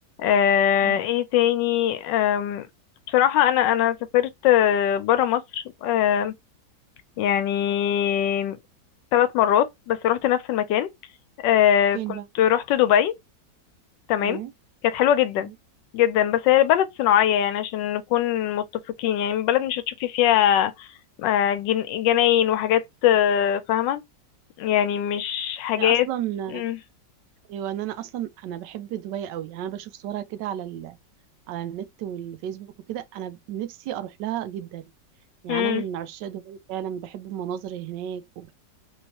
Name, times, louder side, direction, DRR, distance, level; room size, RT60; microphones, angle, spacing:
voice 1, 0.2-2.7 3.1-6.3 7.2-8.6 9.1-10.9 11.4-13.1 14.1-14.4 14.8-15.5 15.9-18.6 19.0-20.9 21.2-24.0 24.6-26.1 26.5-26.8 35.5-35.8, left 10 dB, 90° left, 1.3 m, -21 dB
voice 2, 11.9-12.3 14.2-14.5 15.4-15.5 25.8-26.6 27.5-31.0 31.5-34.8 35.4-38.5, right 11 dB, 80° right, 1.2 m, -33 dB
3.4 x 3.1 x 2.9 m
omnidirectional pair, 1.9 m